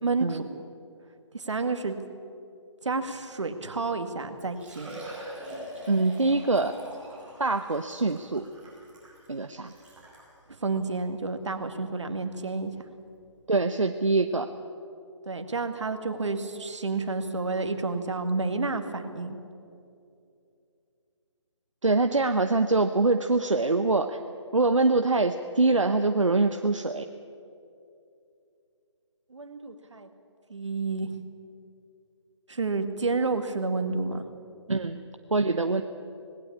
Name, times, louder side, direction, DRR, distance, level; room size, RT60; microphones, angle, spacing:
voice 1, 0.0-0.5 1.3-2.0 2.8-5.0 10.6-12.7 15.3-19.4 29.3-30.1 30.5-31.1 32.5-34.2, right 3 dB, 70° right, 8 dB, 2.1 m, -30 dB
Liquid, 4.4-10.3 11.0-11.1 11.5-11.6 13.3-13.4 13.5-13.6, right 1 dB, 5° right, 7.0 m, -43 dB
voice 2, 5.9-6.7 7.4-8.4 9.3-9.7 13.5-14.5 21.8-24.2 24.5-27.1 34.7-35.0 35.3-35.8, right 3 dB, 85° right, 8 dB, 1.0 m, -24 dB
19.5 x 17.0 x 8.6 m, 2.6 s
figure-of-eight pair, 150°, 16 cm